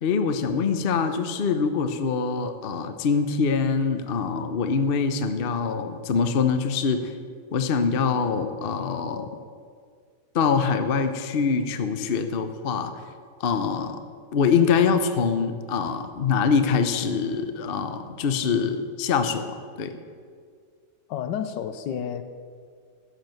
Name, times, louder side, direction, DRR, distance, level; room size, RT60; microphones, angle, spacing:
voice 1, 0.0-7.1 7.5-9.3 10.3-12.9 13.4-14.0 14.3-19.9, left 5 dB, 45° left, 0.7 m, -24 dB
voice 2, 21.1-22.2, left 8 dB, 75° left, 1.3 m, -30 dB
14.0 x 7.8 x 7.7 m
omnidirectional pair, 2.0 m